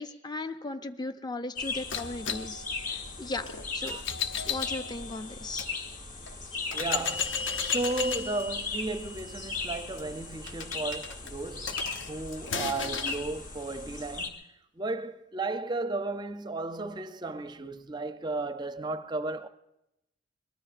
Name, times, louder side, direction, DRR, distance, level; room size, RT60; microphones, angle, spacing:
voice 1, 0.0-3.5 3.7-4.0 4.5-5.7 6.5-6.7, left 2 dB, 20° left, 0.6 m, -37 dB
sound 1, 1.6-14.3, left 3 dB, 40° left, 1.3 m, -38 dB
sound 2, 1.9-5.7 6.3-6.4 6.7-13.2, left 6 dB, 70° left, 0.9 m, -35 dB
voice 2, 6.7-11.8 12.1-14.3 14.8-19.5, right 2 dB, 20° right, 0.5 m, -34 dB
23.5 x 20.5 x 2.5 m
head